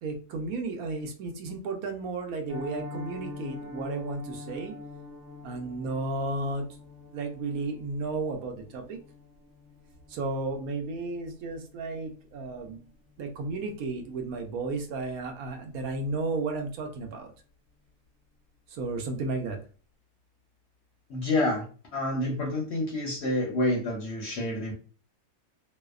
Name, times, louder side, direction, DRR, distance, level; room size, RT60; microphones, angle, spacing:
voice 1, 0.0-4.7 5.4-6.7 7.1-9.0 10.1-12.8 13.2-17.3 18.7-19.6, right 3 dB, 75° right, 4 dB, 1.0 m, -33 dB
Piano, 2.5-13.4 13.6-13.9 14.2-14.3 14.7-14.9 15.2-15.3, left 2 dB, 30° right, 0.7 m, -45 dB
voice 2, 21.1-21.6 21.9-24.7, left 1 dB, 60° left, 0 dB, 0.7 m, -28 dB
2.6 x 2.1 x 2.3 m, 0.38 s
omnidirectional pair, 1.6 m